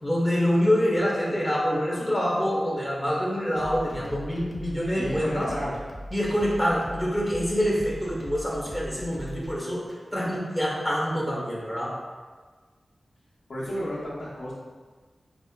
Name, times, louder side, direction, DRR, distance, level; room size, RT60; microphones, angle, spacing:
voice 1, 0.0-5.5 6.1-9.8 10.1-12.0, equal, ahead, -5 dB, 1.0 m, -26 dB
sound 1, 3.5-10.0, equal, 30° left, 0.6 m, -41 dB
voice 2, 4.9-5.7 13.5-14.5, left 1 dB, 75° left, -7 dB, 0.8 m, -32 dB
5.4 x 2.0 x 2.2 m, 1.4 s
wide cardioid pair, 75°, 0 cm